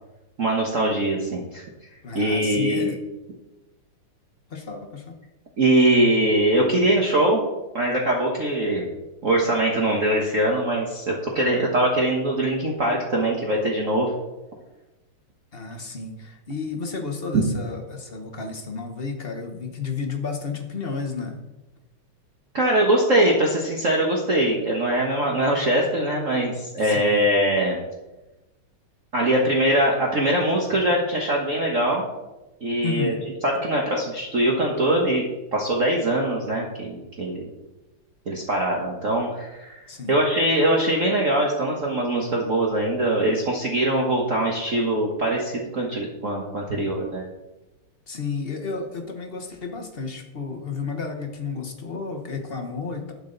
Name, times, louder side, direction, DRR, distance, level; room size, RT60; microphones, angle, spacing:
voice 1, 0.4-1.7 2.1-2.9 5.6-7.4 7.7-8.9 9.2-14.1 17.3-17.4 22.5-27.8 29.1-32.1 32.6-33.1 33.4-35.2 35.5-37.4 38.3-39.8 40.1-47.2, right 1 dB, 40° right, -1 dB, 1.5 m, -22 dB
voice 2, 2.0-3.0 4.5-5.2 15.5-21.4 26.8-27.3 32.8-33.2 39.9-40.2 48.1-53.1, left 4 dB, 40° left, 3 dB, 0.9 m, -32 dB
11.5 x 8.9 x 3.9 m, 1.1 s
omnidirectional pair, 2.4 m